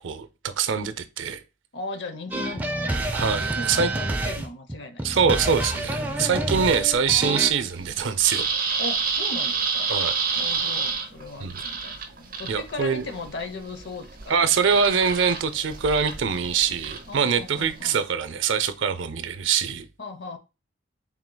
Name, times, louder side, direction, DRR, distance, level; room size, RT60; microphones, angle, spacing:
voice 1, 0.0-1.4 3.1-3.9 5.0-8.5 9.9-10.1 11.4-11.6 12.5-13.0 14.3-19.9, right 6 dB, 75° right, 0.5 m, -24 dB
voice 2, 1.7-3.0 3.4-5.2 8.8-9.9 10.4-14.8 17.1-18.0 20.0-20.4, left 3 dB, 60° left, 0.7 m, -37 dB
sound 1, 2.3-7.5, right 1 dB, 10° right, 0.4 m, -28 dB
sound 2, 5.8-17.8, right 5 dB, 45° right, 0.8 m, -31 dB
4.7 x 3.6 x 2.2 m
head